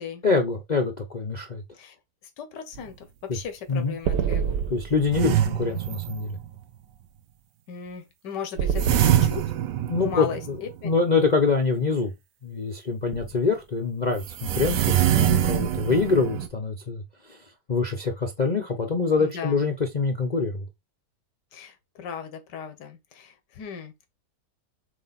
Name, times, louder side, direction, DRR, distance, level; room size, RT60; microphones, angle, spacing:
voice 1, 0.2-1.6 3.3-3.4 3.7-4.0 4.7-6.4 9.9-10.6 10.8-12.1 12.4-17.4 17.7-20.6, left 4 dB, 35° left, 0.7 m, -25 dB
voice 2, 2.4-4.6 7.7-9.4 10.0-10.9 14.6-15.1 19.2-19.6 21.5-24.1, left 6 dB, 90° left, 1.7 m, -37 dB
sound 1, 2.8-2.9 3.4-3.5 4.1-6.6 8.6-10.9 13.1-13.2 14.2-16.5, right 10 dB, 85° right, 1.3 m, -24 dB
7.5 x 3.2 x 4.1 m
omnidirectional pair, 1.8 m